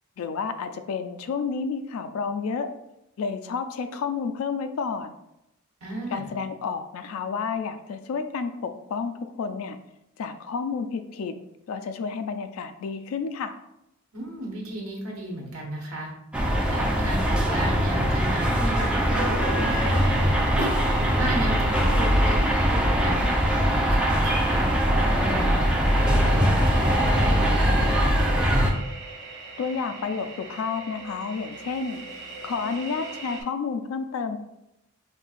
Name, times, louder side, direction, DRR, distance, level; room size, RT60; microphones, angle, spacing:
voice 1, 0.2-2.7 3.2-5.1 6.1-9.8 10.2-11.3 11.7-13.6 29.6-32.0 32.4-34.4, left 5 dB, 75° left, 8 dB, 0.3 m, -30 dB
voice 2, 5.8-6.3 14.1-16.1 16.7-20.0 20.6-22.5 23.0-28.1, right 1 dB, 80° right, -2 dB, 1.1 m, -34 dB
sound 1, 16.3-28.7, equal, 5° right, 0.4 m, -22 dB
sound 2, 19.7-33.4, right 3 dB, 55° right, 0.7 m, -41 dB
5.3 x 2.7 x 2.4 m, 0.85 s
head